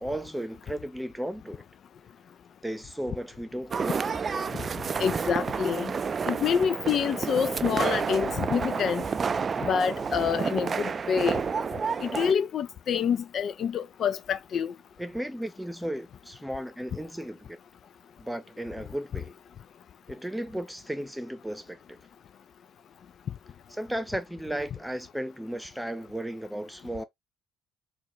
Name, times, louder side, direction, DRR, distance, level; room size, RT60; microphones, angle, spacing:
voice 1, 0.0-1.6 2.6-4.0 15.0-17.6 18.2-19.4 20.1-22.0 23.7-27.0, right 1 dB, 5° right, 0.9 m, -35 dB
sound 1, 3.7-12.3, right 5 dB, 40° right, 0.3 m, -30 dB
voice 2, 5.0-5.9 6.3-9.0 9.6-11.4 12.0-14.7, left 7 dB, 55° left, 0.4 m, -27 dB
4.1 x 2.4 x 3.0 m
hypercardioid pair, 60°, 0 cm